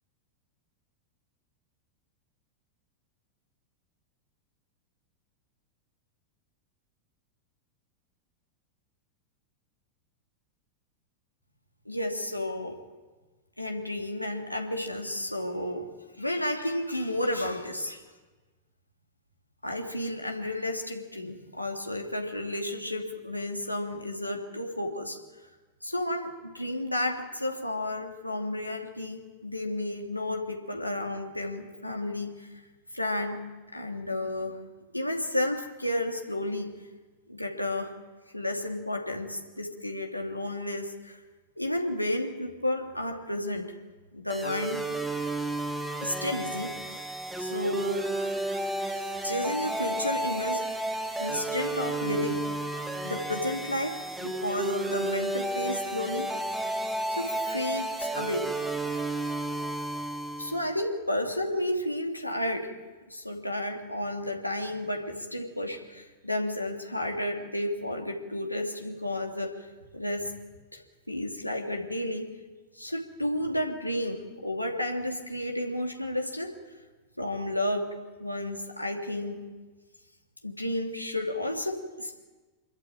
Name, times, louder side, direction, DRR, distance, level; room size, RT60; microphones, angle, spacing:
voice 1, 11.8-12.8 13.6-15.9 16.2-18.0 19.6-25.2 25.8-32.5 32.9-33.4 33.7-34.6 34.9-36.7 37.3-37.9 38.3-41.2 41.6-43.8 44.1-44.8 46.0-47.1 47.4-48.1 48.9-50.6 51.2-52.4 53.0-56.3 57.1-58.4 60.4-62.7 63.1-70.3 70.7-70.8 71.1-72.3 72.7-76.5 77.2-77.9 78.2-79.4 80.4-82.2, left 1 dB, 90° left, 2 dB, 2.7 m, -32 dB
sound 1, 44.3-60.7, right 2 dB, 5° right, 2.2 m, -32 dB
26.0 x 14.0 x 9.1 m, 1.3 s
figure-of-eight pair, 90°, 0 cm